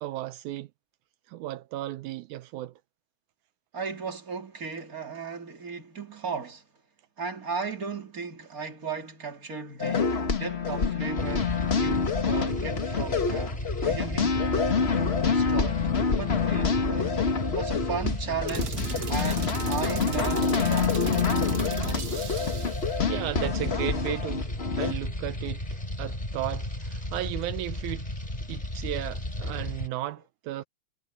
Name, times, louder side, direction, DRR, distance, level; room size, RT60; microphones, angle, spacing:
voice 1, 0.0-0.7 1.3-2.7 23.1-24.5 24.8-25.6 26.0-28.1 28.5-30.6, right 14 dB, 80° right, 2.2 m, -34 dB
voice 2, 3.7-6.6 7.2-11.5 11.8-13.6 13.8-14.4 15.0-17.2 17.5-21.1, right 5 dB, 30° right, 3.3 m, -36 dB
sound 1, 9.8-24.9, left 5 dB, 55° left, 0.6 m, -27 dB
sound 2, 11.2-29.9, left 1 dB, 10° left, 4.6 m, -34 dB
sound 3, 18.5-22.9, right 6 dB, 65° right, 0.9 m, -36 dB
omnidirectional pair, 3.4 m